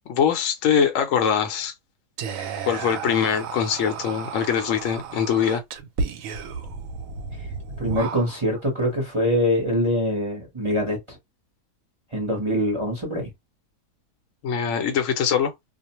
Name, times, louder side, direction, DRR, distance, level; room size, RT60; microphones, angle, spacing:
voice 1, 0.1-1.7 2.6-5.6 14.4-15.5, left 7 dB, 65° left, 0.9 m, -22 dB
Whispering, 2.2-8.6, right 5 dB, 70° right, 0.9 m, -33 dB
voice 2, 7.8-11.2 12.1-13.3, equal, 25° right, 0.7 m, -24 dB
2.5 x 2.1 x 2.9 m
omnidirectional pair, 1.7 m